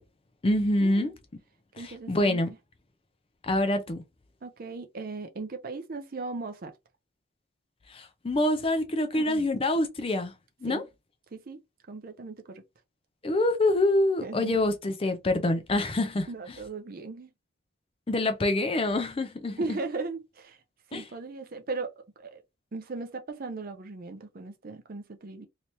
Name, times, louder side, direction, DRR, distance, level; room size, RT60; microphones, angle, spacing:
voice 1, 0.4-1.1 1.8-2.5 3.4-4.0 7.9-10.3 10.6-10.8 13.2-16.3 18.1-19.6 20.9-21.0, left 1 dB, 25° left, 0.4 m, -26 dB
voice 2, 1.8-2.4 4.4-6.7 9.1-9.5 10.7-10.8 11.3-11.6 11.9-12.6 14.2-14.6 16.3-17.3 19.6-20.6 20.9-22.4 22.7-25.5, right 3 dB, 40° right, 0.5 m, -37 dB
3.2 x 2.9 x 2.8 m
head